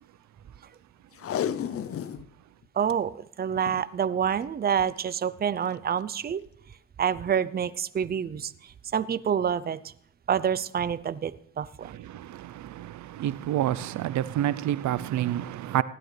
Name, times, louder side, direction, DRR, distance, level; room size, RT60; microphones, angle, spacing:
Packing tape duct tape, 1.1-2.3 2.6-2.9 3.6-3.9 4.9-5.1 5.7-5.8, left 9 dB, 50° left, 0.6 m, -32 dB
voice 1, 2.8-6.4 7.0-9.9 10.3-12.0, right 8 dB, 30° right, 0.6 m, -28 dB
voice 2, 13.2-15.8, right 12 dB, 70° right, 0.6 m, -27 dB
16.0 x 11.5 x 3.3 m
cardioid pair, 90°, 30 cm